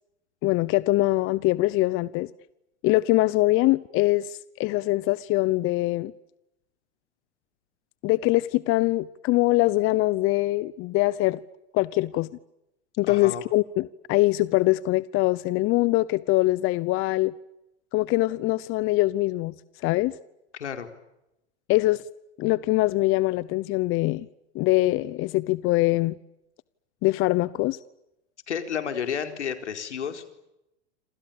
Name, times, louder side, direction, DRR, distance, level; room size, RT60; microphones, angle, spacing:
voice 1, 0.4-2.3 2.8-6.1 8.0-11.4 11.7-12.3 13.0-17.3 17.9-19.5 19.8-20.1 21.7-22.0 22.4-24.3 24.5-26.2 27.0-27.8, left 19 dB, 40° left, 0.9 m, -23 dB
voice 2, 13.1-13.4 20.5-20.9 28.5-30.3, left 8 dB, 85° left, 4.4 m, -31 dB
28.0 x 27.5 x 7.1 m
hypercardioid pair, 110°, 34 cm